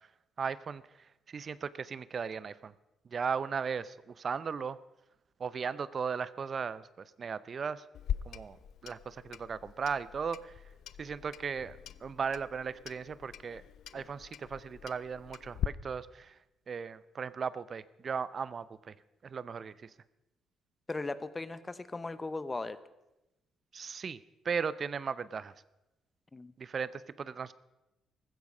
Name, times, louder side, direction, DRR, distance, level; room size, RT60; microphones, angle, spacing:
voice 1, 0.4-0.8 1.3-2.7 3.1-4.8 5.4-6.8 7.2-7.8 8.3-8.6 8.8-10.5 11.0-13.6 13.9-16.4 16.7-18.9 19.2-19.9 23.7-24.2 24.4-25.5 26.6-27.5, right 6 dB, 45° right, 17 dB, 0.5 m, -36 dB
Clock, 7.9-15.7, left 10 dB, 75° left, 0.5 m, -42 dB
voice 2, 20.9-22.8 26.3-26.5, left 3 dB, 20° left, 14 dB, 0.9 m, -37 dB
15.5 x 14.5 x 5.4 m, 0.97 s
cardioid pair, 90°, 0 cm